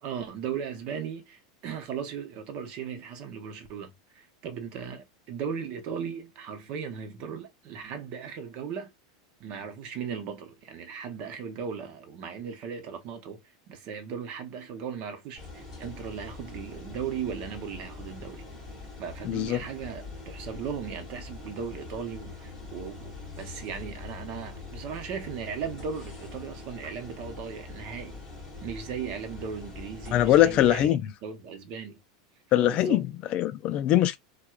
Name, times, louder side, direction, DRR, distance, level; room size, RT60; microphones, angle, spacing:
voice 1, 0.0-8.9 9.4-13.4 13.7-18.5 19.0-28.2 28.6-32.0 32.7-33.0, right 7 dB, 45° right, 0.8 m, -37 dB
sound 1, 15.3-30.9, left 3 dB, 10° left, 2.4 m, -43 dB
voice 2, 19.2-19.6 30.1-31.1 32.5-33.0 33.3-34.2, left 13 dB, 35° left, 0.4 m, -22 dB
4.4 x 2.2 x 2.4 m
supercardioid pair, 155°, 3 cm